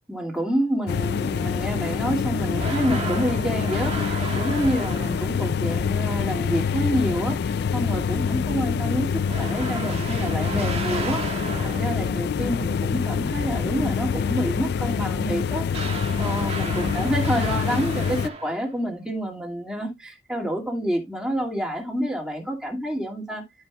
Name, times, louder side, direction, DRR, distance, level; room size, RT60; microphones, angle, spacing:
voice 1, 0.1-9.1 9.4-23.4, equal, 5° right, 2.2 m, -28 dB
sound 1, 0.9-18.3, left 6 dB, 65° left, 0.3 m, -26 dB
sound 2, 2.5-5.5 9.3-12.2 15.7-18.8, right 4 dB, 35° right, 1.4 m, -34 dB
12.0 x 5.4 x 2.3 m
head